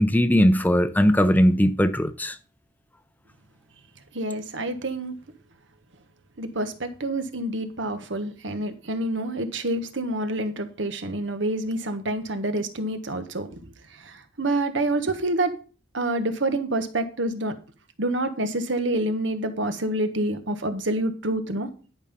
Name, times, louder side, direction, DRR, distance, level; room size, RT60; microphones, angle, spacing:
voice 1, 0.0-2.4, equal, 10° left, 0.6 m, -19 dB
voice 2, 4.1-5.1 6.4-13.6 13.9-15.6 15.9-17.6 18.0-21.7, right 1 dB, 75° right, 1.4 m, -27 dB
11.5 x 5.6 x 5.3 m
head